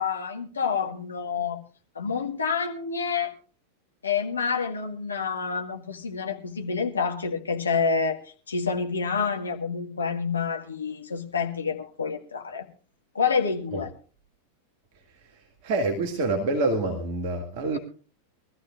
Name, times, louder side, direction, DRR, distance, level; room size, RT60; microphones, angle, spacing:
voice 1, 0.0-1.6 1.9-3.3 4.0-8.2 8.5-12.7 13.1-13.9 17.7-17.8, left 5 dB, 75° left, 1.7 m, -28 dB
voice 2, 15.6-17.8, right 2 dB, 45° right, 2.1 m, -26 dB
23.0 x 14.0 x 2.5 m
figure-of-eight pair, 90°, 0 cm